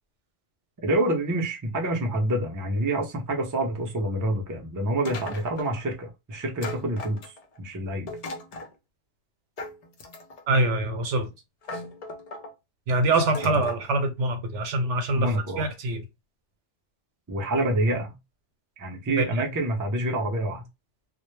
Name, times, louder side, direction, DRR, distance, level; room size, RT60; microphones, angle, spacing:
voice 1, 0.8-8.1 13.4-13.6 15.2-15.7 17.3-18.2 18.8-20.7, right 1 dB, 30° right, 0.3 m, -27 dB
sound 1, 5.0-5.8 6.6-7.6 8.1-8.7 9.6-10.5 11.2-11.3 11.6-12.5 13.2-13.9, left 2 dB, 55° left, 0.4 m, -38 dB
voice 2, 10.5-11.3 12.9-16.0 19.2-19.4, right 2 dB, 80° right, 1.0 m, -24 dB
2.1 x 2.0 x 3.1 m
omnidirectional pair, 1.2 m